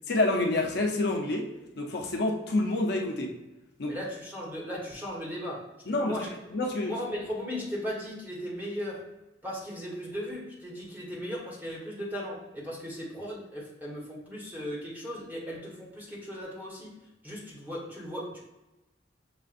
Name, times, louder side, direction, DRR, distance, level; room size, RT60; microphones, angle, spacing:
voice 1, 0.1-3.4 3.8-4.0 5.9-6.2 6.5-6.9, left 2 dB, 65° left, 1 dB, 0.7 m, -28 dB
voice 2, 3.9-6.3 6.8-9.1 9.4-16.9 17.2-18.4, equal, 10° right, -5 dB, 1.3 m, -37 dB
7.1 x 2.5 x 2.6 m, 1.0 s
head